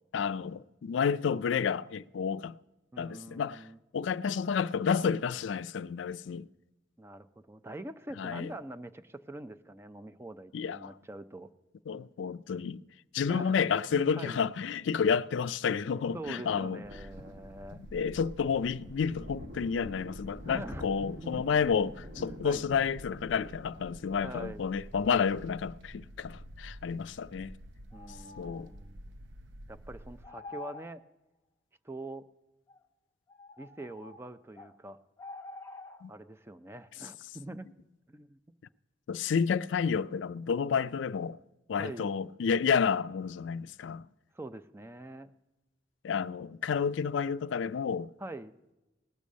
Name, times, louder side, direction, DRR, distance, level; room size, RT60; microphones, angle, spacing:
voice 1, 0.1-2.6 3.0-3.6 3.9-6.5 8.2-8.5 10.5-10.9 11.9-12.8 13.1-16.8 17.9-27.5 28.4-28.7 36.0-36.1 39.1-41.4 41.7-44.0 46.0-48.1, left 6 dB, 80° left, 0.4 m, -30 dB
voice 2, 2.9-3.8 7.0-11.5 13.3-13.6 13.9-14.4 16.1-17.8 20.5-21.4 22.4-22.6 24.2-24.6 27.9-29.2 29.7-31.0 31.8-32.2 33.6-35.0 36.1-37.7 38.1-38.4 41.8-42.1 44.3-45.3 48.2-48.6, right 1 dB, 15° right, 0.5 m, -44 dB
sound 1, 16.1-24.4, equal, 60° right, 1.7 m, -49 dB
sound 2, 16.8-30.3, right 1 dB, 80° right, 0.7 m, -49 dB
sound 3, 27.9-28.7 30.2-30.9 32.7-32.8 33.3-34.7 35.2-36.0, left 3 dB, 20° left, 1.0 m, -47 dB
18.5 x 6.9 x 6.3 m
head